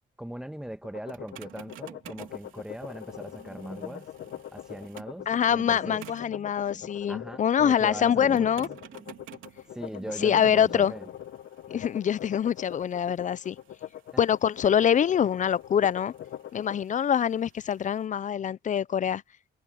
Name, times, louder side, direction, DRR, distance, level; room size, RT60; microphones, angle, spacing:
voice 1, 0.2-4.1 4.5-6.0 7.1-8.6 9.7-11.1, right 1 dB, 5° right, 1.4 m, -40 dB
sound 1, 0.8-16.8, left 11 dB, 65° left, 0.9 m, -42 dB
sound 2, 1.1-5.3 6.0-6.4 8.4-18.0, right 13 dB, 85° right, 3.5 m, -53 dB
sound 3, 2.0-11.1, right 4 dB, 30° right, 1.7 m, -49 dB
voice 2, 5.3-8.7 10.2-10.9 11.7-13.6 14.2-16.1 16.5-19.2, left 8 dB, 40° left, 0.5 m, -24 dB
cardioid pair, 90°, 20 cm